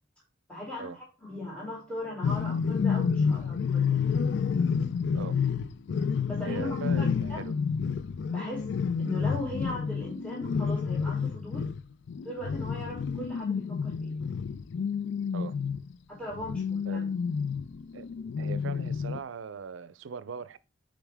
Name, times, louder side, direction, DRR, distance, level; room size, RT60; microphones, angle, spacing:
voice 1, 0.5-4.0 6.3-7.4 8.3-8.7 9.0-11.7 12.2-14.2 16.1-17.1, left 1 dB, 5° left, 2.8 m, -39 dB
sound 1, 2.2-15.9 16.3-19.2, left 6 dB, 70° left, 0.4 m, -29 dB
voice 2, 6.4-7.6 15.3-15.5 16.9-17.0 17.9-18.1 18.4-20.6, right 6 dB, 85° right, 0.5 m, -40 dB
7.2 x 5.0 x 3.4 m
head